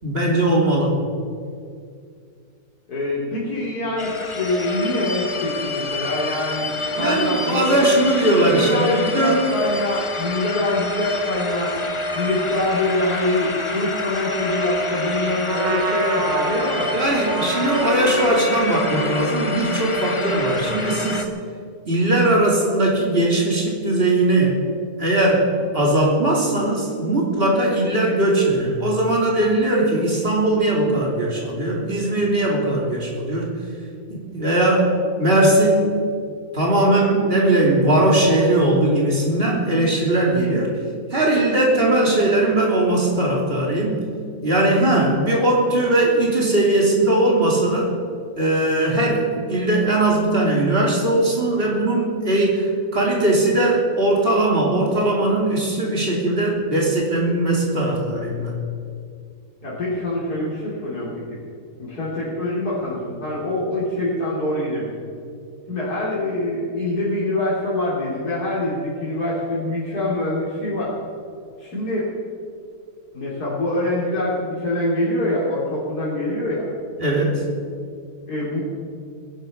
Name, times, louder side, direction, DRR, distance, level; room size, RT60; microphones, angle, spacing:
voice 1, 0.0-1.0 6.9-9.5 16.9-21.2 21.9-24.6 25.0-33.5 34.1-36.0 36.5-40.7 41.1-44.0 44.4-47.9 48.4-58.5 77.0-77.5, right 1 dB, 35° right, -2 dB, 3.3 m, -19 dB
voice 2, 2.9-7.9 8.4-11.7 12.1-16.9 59.6-61.4 61.8-64.9 65.7-70.9 71.6-72.1 73.1-76.7 78.3-78.6, left 1 dB, 70° left, -8 dB, 3.5 m, -24 dB
sound 1, 4.0-21.3, left 2 dB, 25° left, 0.8 m, -28 dB
Trumpet, 15.4-20.7, right 2 dB, 75° right, 2.2 m, -28 dB
20.5 x 11.5 x 5.4 m, 2.3 s
omnidirectional pair, 1.7 m